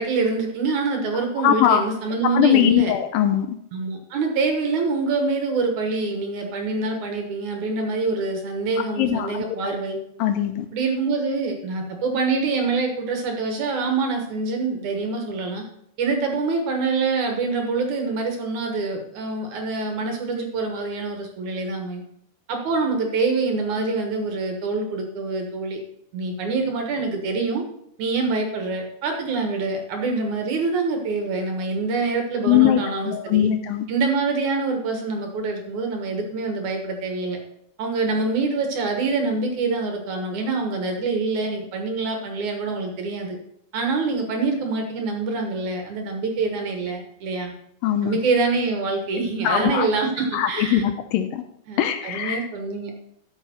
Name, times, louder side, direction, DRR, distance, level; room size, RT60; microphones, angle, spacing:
voice 1, 0.0-2.9 3.7-10.0 10.7-15.6 16.0-22.0 22.5-25.8 26.1-27.6 28.0-33.5 33.9-37.4 37.8-43.4 43.7-47.5 48.0-50.8 51.7-52.9, right 3 dB, 60° right, 3 dB, 2.4 m, -25 dB
voice 2, 1.4-1.9 2.2-3.6 9.0-9.4 10.2-10.7 32.4-33.9 47.8-48.2 49.4-49.9 50.3-51.4 51.8-52.5, left 10 dB, 80° left, 8 dB, 2.2 m, -21 dB
12.0 x 6.9 x 4.4 m, 0.72 s
omnidirectional pair, 4.3 m